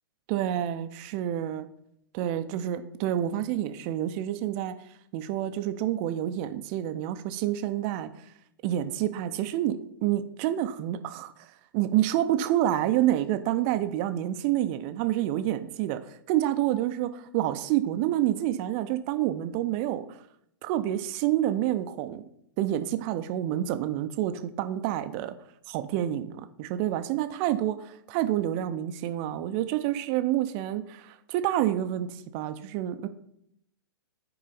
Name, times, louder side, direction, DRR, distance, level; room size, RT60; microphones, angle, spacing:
voice 1, 0.3-1.7 2.1-4.7 5.1-8.1 8.6-11.5 11.7-20.2 20.6-22.2 22.6-25.3 25.7-33.1, right 12 dB, 30° right, 10 dB, 0.5 m, -28 dB
9.6 x 4.7 x 4.0 m, 0.72 s
figure-of-eight pair, 110°, 12 cm